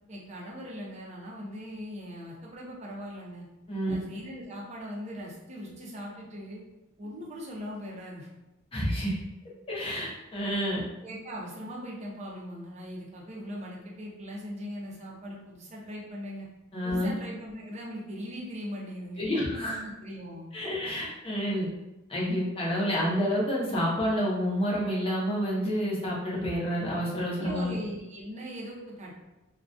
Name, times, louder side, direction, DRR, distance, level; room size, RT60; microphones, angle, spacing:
voice 1, 0.1-3.5 3.9-6.6 7.0-8.3 11.0-16.5 16.8-20.5 27.4-29.1, equal, 35° right, -3 dB, 0.5 m, -40 dB
voice 2, 8.7-9.2 9.7-10.8 16.7-17.1 19.2-19.8 20.5-21.7 22.1-27.8, equal, 25° left, -5 dB, 0.6 m, -29 dB
2.3 x 2.2 x 2.5 m, 0.96 s
head